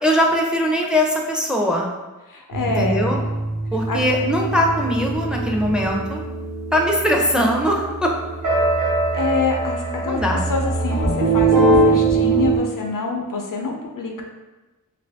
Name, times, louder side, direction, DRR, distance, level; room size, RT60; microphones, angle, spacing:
voice 1, 0.0-1.9 2.8-3.2 3.7-6.2 6.7-8.2 10.0-10.5, equal, 5° right, 0 dB, 0.4 m, -20 dB
voice 2, 2.3-3.1 3.9-4.0 9.1-10.2 10.5-14.2, left 3 dB, 80° left, 1 dB, 0.6 m, -26 dB
sound 1, 2.5-12.6, right 3 dB, 65° right, 0.7 m, -22 dB
2.6 x 2.6 x 3.3 m, 1.1 s
wide cardioid pair, 60°, 32 cm